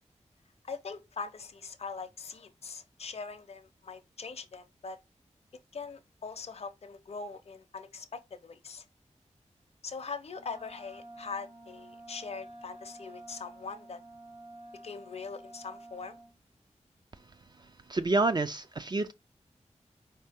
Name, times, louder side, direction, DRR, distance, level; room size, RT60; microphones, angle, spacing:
voice 1, 0.6-5.0 5.7-8.8 9.8-14.0 14.8-16.2, left 5 dB, 60° left, 0.5 m, -42 dB
Wind instrument woodwind instrument, 10.3-16.4, right 1 dB, 55° right, 1.4 m, -50 dB
voice 2, 17.6-19.1, right 2 dB, 35° right, 0.3 m, -29 dB
4.4 x 2.7 x 3.5 m
wide cardioid pair, 100°, 12 cm